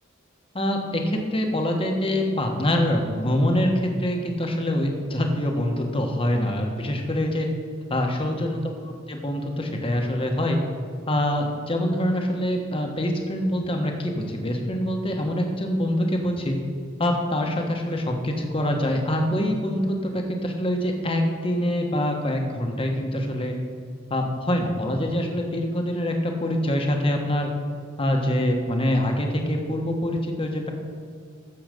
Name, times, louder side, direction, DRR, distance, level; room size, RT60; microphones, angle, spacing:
voice 1, 0.5-7.5 7.9-8.6 9.1-10.6 11.1-16.6 17.0-23.5 24.1-27.5 28.0-30.7, left 1 dB, 30° left, 2 dB, 1.4 m, -25 dB
14.0 x 7.0 x 5.2 m, 2.1 s
head